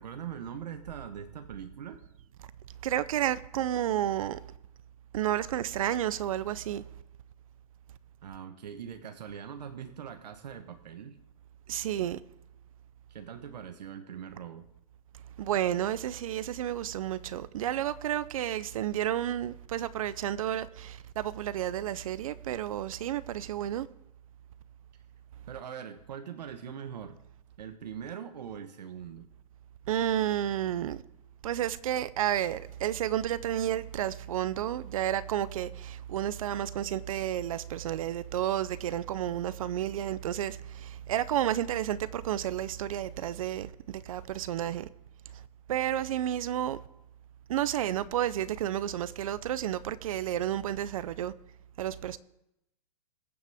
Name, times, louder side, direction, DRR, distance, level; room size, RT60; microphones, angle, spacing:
voice 1, 0.0-2.0 8.2-11.2 13.1-14.7 25.5-27.2 27.6-29.3, right 8 dB, 80° right, 1.1 m, -42 dB
voice 2, 2.8-4.4 5.1-6.8 11.7-12.2 15.4-23.9 29.9-31.0 31.4-44.9 45.3-45.4 45.7-46.8 47.5-51.3 51.8-52.2, right 11 dB, 55° right, 0.5 m, -31 dB
21.5 x 7.3 x 3.5 m
hypercardioid pair, 160°, 21 cm